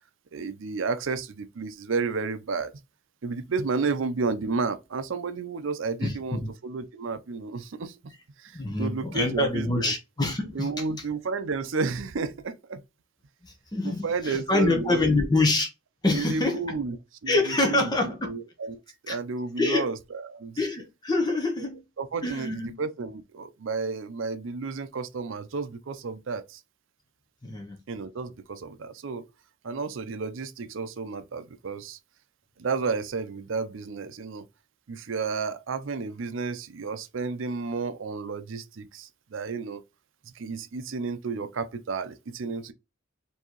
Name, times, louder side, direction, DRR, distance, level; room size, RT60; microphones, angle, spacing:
voice 1, 0.3-2.7 3.2-8.0 8.4-9.9 10.5-12.8 13.8-15.3 16.1-17.0 17.2-17.9 18.2-20.6 22.0-26.6 27.9-29.3 29.6-32.0 32.6-34.5 34.9-39.8 40.3-42.7, right 4 dB, 70° right, 0.5 m, -32 dB
voice 2, 6.0-6.5 8.5-10.8 13.4-15.7 16.0-16.8 17.3-18.3 19.1-19.2 19.6-19.9 20.6-21.8 22.2-22.8 27.4-27.8, left 2 dB, 20° left, 0.7 m, -26 dB
4.6 x 2.8 x 2.9 m
head